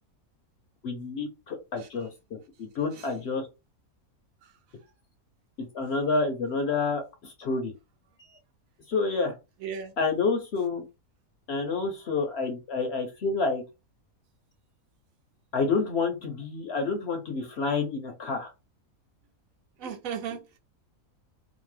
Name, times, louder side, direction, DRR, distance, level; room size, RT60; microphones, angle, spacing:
voice 1, 0.8-3.5 5.6-7.7 8.9-9.3 10.0-10.8 11.5-13.6 15.5-18.5, left 4 dB, 60° left, 0.7 m, -29 dB
voice 2, 9.6-9.9 19.8-20.6, right 7 dB, 75° right, 1.0 m, -36 dB
2.9 x 2.1 x 3.1 m
omnidirectional pair, 1.5 m